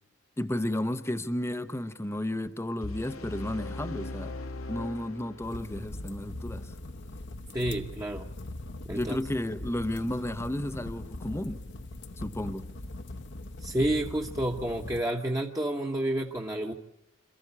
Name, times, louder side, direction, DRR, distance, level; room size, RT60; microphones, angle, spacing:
voice 1, 0.4-4.4 4.7-6.7 8.9-11.6 12.2-12.7, left 1 dB, 15° left, 0.7 m, -32 dB
sound 1, 2.8-5.9, left 2 dB, 85° left, 1.8 m, -39 dB
sound 2, 5.4-15.0, left 2 dB, 60° left, 1.0 m, -41 dB
voice 2, 7.5-8.3 8.8-9.2 13.6-16.7, right 1 dB, 15° right, 1.2 m, -30 dB
27.5 x 14.0 x 8.3 m
head